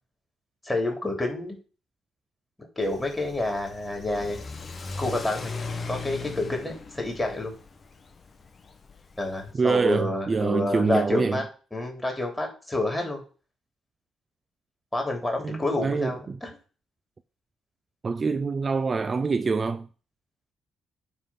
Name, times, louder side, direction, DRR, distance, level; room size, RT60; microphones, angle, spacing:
voice 1, 0.6-1.6 2.6-4.4 5.0-5.6 5.9-7.5 9.2-11.4 11.7-13.2 14.9-16.6, left 2 dB, 10° left, 3.3 m, -29 dB
Car / Accelerating revving vroom, 2.8-9.5, left 4 dB, 35° left, 1.2 m, -39 dB
voice 2, 9.5-11.4 15.4-16.4 18.0-19.9, right 4 dB, 35° right, 0.4 m, -25 dB
9.9 x 3.9 x 5.7 m
cardioid pair, 90°, 0 cm